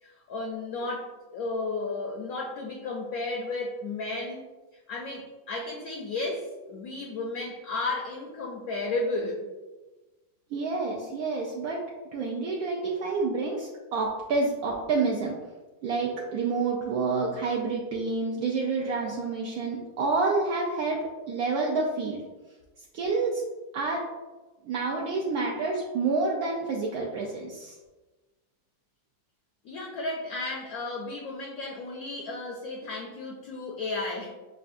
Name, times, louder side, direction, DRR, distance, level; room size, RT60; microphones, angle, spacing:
voice 1, 0.0-4.4 4.9-9.5 29.6-34.3, left 2 dB, 70° left, 0 dB, 0.8 m, -33 dB
voice 2, 10.5-11.8 12.1-15.3 15.8-22.2 22.9-23.4 23.7-24.1 24.6-27.8, right 3 dB, 75° right, -2 dB, 0.8 m, -28 dB
6.2 x 2.3 x 2.5 m, 1.2 s
omnidirectional pair, 2.1 m